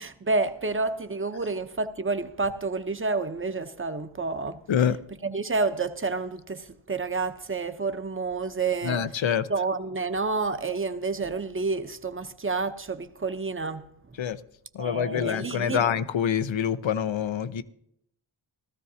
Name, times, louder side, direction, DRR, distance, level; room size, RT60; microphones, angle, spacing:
voice 1, 0.0-4.6 5.2-9.1 9.5-13.8 14.8-15.9, right 3 dB, 25° right, 0.8 m, -29 dB
voice 2, 8.8-9.5 14.2-14.4 14.7-17.6, left 8 dB, 75° left, 0.7 m, -26 dB
16.5 x 13.5 x 2.8 m
cardioid pair, 50°, 47 cm